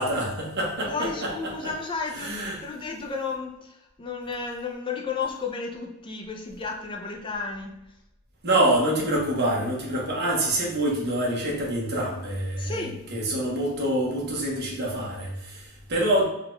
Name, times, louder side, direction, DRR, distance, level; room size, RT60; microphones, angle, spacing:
voice 1, 0.0-1.7 2.1-2.6 8.4-16.2, right 1 dB, 50° right, -2 dB, 0.9 m, -26 dB
voice 2, 0.9-7.8 12.6-13.0, left 4 dB, 25° left, 1 dB, 0.4 m, -33 dB
3.7 x 2.3 x 3.0 m, 0.91 s
head